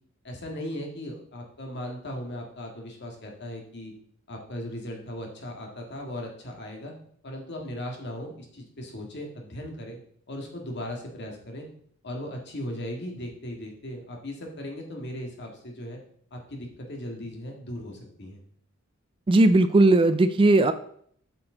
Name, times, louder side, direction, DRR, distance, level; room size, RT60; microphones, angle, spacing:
voice 1, 0.2-3.9 4.3-6.9 7.2-10.0 10.3-11.7 12.0-16.0 16.3-18.4, left 1 dB, 55° left, 1 dB, 1.8 m, -37 dB
voice 2, 19.3-20.7, right 2 dB, 25° right, 12 dB, 0.3 m, -18 dB
8.0 x 6.0 x 3.8 m, 0.63 s
head